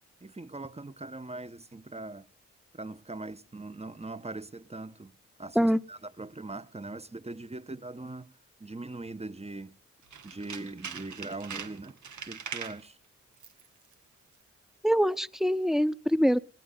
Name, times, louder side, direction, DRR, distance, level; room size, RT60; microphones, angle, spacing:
voice 1, 0.2-2.3 2.7-5.1 5.4-8.3 8.6-9.7 10.2-12.0 12.3-13.0, right 2 dB, 20° right, 1.3 m, -41 dB
Tools, 10.0-12.8 13.3-13.7 13.9-14.0, right 7 dB, 75° right, 2.1 m, -41 dB
voice 2, 14.8-16.4, equal, ahead, 1.1 m, -24 dB
20.0 x 17.5 x 4.1 m
supercardioid pair, 45°, 29 cm